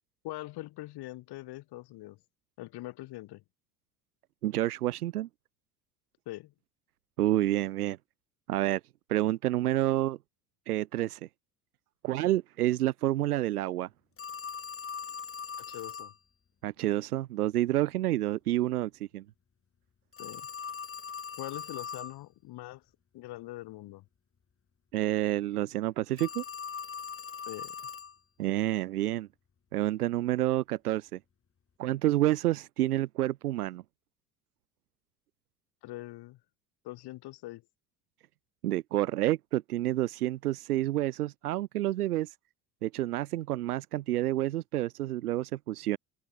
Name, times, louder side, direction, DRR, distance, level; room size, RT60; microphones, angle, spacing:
voice 1, 0.2-2.2 2.6-3.4 6.3-6.5 15.6-16.1 20.2-20.5 21.4-22.8 23.1-24.0 27.5-27.8 35.8-36.4 36.8-37.6, left 17 dB, 60° left, 3.8 m, -42 dB
voice 2, 4.4-5.3 7.2-8.0 8.5-8.8 9.1-10.2 10.7-11.2 12.0-13.9 16.6-19.2 24.9-26.4 28.4-29.3 29.7-31.2 31.8-33.8 38.6-42.3 42.8-46.0, right 14 dB, 85° right, 1.4 m, -29 dB
Telephone, 14.2-16.1 20.1-22.2 26.2-28.2, left 6 dB, 30° left, 3.0 m, -40 dB
open air
hypercardioid pair, 65°, 44 cm